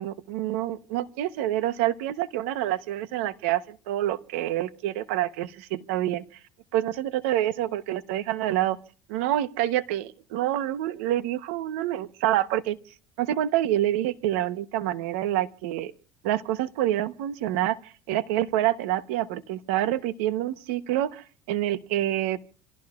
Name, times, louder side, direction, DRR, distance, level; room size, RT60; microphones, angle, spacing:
voice 1, 0.0-6.2 6.7-8.8 9.1-12.8 13.2-15.9 16.2-22.4, right 13 dB, 90° right, 1.0 m, -27 dB
28.5 x 16.0 x 2.5 m
cardioid pair, 135°, 7 cm